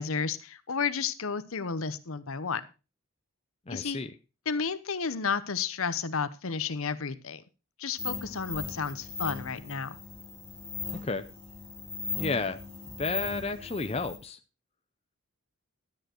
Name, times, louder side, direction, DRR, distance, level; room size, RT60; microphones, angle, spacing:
voice 1, 0.0-2.6 3.7-4.0 4.5-7.4 7.8-10.0, left 5 dB, 70° left, 14 dB, 0.9 m, -32 dB
voice 2, 3.7-4.1 11.0-11.2 12.2-12.6 12.9-14.4, left 3 dB, 25° left, 8 dB, 0.6 m, -32 dB
sound 1, 8.0-14.2, left 4 dB, 10° left, 3.6 m, -38 dB
12.5 x 9.2 x 4.5 m, 0.31 s
head